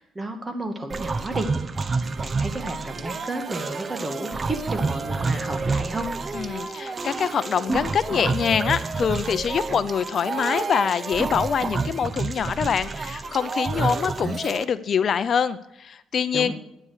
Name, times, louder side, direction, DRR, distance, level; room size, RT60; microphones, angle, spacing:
voice 1, 0.0-1.5 1.8-1.9 2.2-6.1 16.3-16.5, right 2 dB, 20° right, 5 dB, 2.3 m, -32 dB
sound 1, 0.9-14.6, right 4 dB, 35° right, 0.9 m, -29 dB
voice 2, 6.3-16.5, left 7 dB, 55° left, 14 dB, 0.6 m, -25 dB
12.5 x 9.5 x 6.6 m, 0.85 s
cardioid pair, 90°, 0 cm